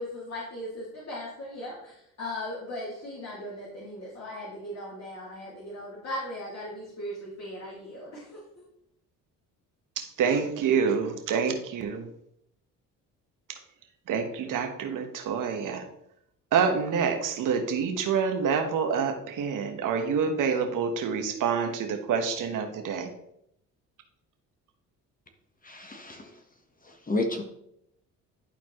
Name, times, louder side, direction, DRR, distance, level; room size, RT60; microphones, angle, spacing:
voice 1, 0.0-8.4, left 1 dB, 50° left, -7 dB, 2.7 m, -38 dB
voice 2, 10.0-12.1 13.5-13.6 14.1-15.9 16.5-23.1, right 6 dB, 65° right, 5 dB, 1.3 m, -27 dB
voice 3, 25.6-26.3 26.8-27.4, left 2 dB, 25° left, 4 dB, 1.4 m, -31 dB
11.5 x 4.2 x 3.1 m, 0.76 s
supercardioid pair, 80°, 34 cm